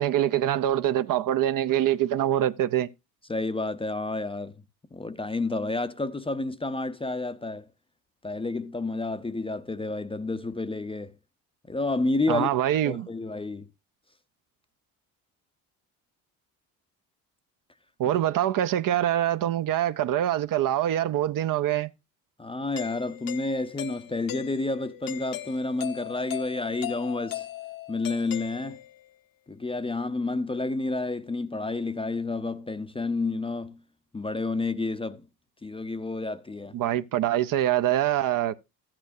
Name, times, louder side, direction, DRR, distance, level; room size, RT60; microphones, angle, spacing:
voice 1, 0.0-2.9 12.3-13.1 18.0-21.9 36.7-38.6, right 12 dB, 45° right, 0.7 m, -24 dB
voice 2, 3.3-4.5 4.9-7.7 8.2-11.1 11.7-12.5 12.8-13.7 22.4-27.5 27.9-28.8 29.5-33.8 34.1-35.2 35.6-36.8, left 3 dB, 10° left, 0.6 m, -30 dB
Doorbell, 22.8-29.1, left 14 dB, 50° left, 0.8 m, -39 dB
13.0 x 8.8 x 2.6 m
hypercardioid pair, 70°, 44 cm